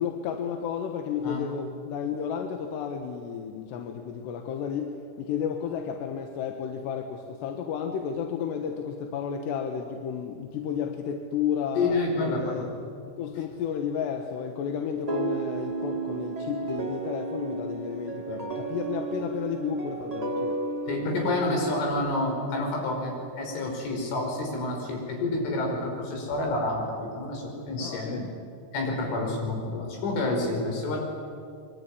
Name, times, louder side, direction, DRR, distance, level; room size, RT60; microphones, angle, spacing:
voice 1, 0.0-12.7 13.2-20.6 27.8-28.3, left 7 dB, 70° left, 4 dB, 3.3 m, -32 dB
voice 2, 11.8-12.6 18.3-18.4 20.9-28.2 28.7-31.0, left 2 dB, 85° left, 1 dB, 7.8 m, -29 dB
sound 1, 15.1-21.9, right 3 dB, 35° right, 0.6 m, -33 dB
24.5 x 23.0 x 10.0 m, 2.4 s
omnidirectional pair, 5.4 m